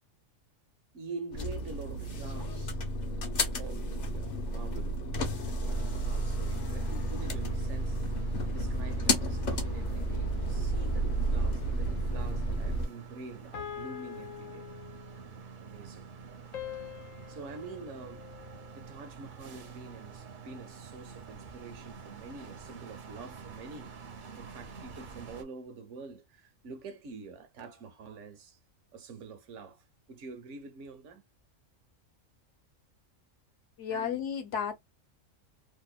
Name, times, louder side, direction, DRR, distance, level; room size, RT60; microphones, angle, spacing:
voice 1, 0.9-2.8 3.5-8.1 8.5-14.7 15.6-16.1 17.3-18.3 18.7-23.9 24.4-28.6 28.9-31.2 33.9-34.2, right 4 dB, 70° right, 1.0 m, -46 dB
sound 1, 1.3-12.9, right 1 dB, 50° left, 0.6 m, -31 dB
sound 2, 5.7-25.4, right 6 dB, 50° right, 0.6 m, -48 dB
sound 3, 11.6-12.3 13.5-15.3 16.5-18.9, left 10 dB, 90° left, 1.0 m, -45 dB
voice 2, 33.8-34.7, left 7 dB, 70° left, 0.9 m, -33 dB
2.8 x 2.1 x 2.3 m
omnidirectional pair, 1.4 m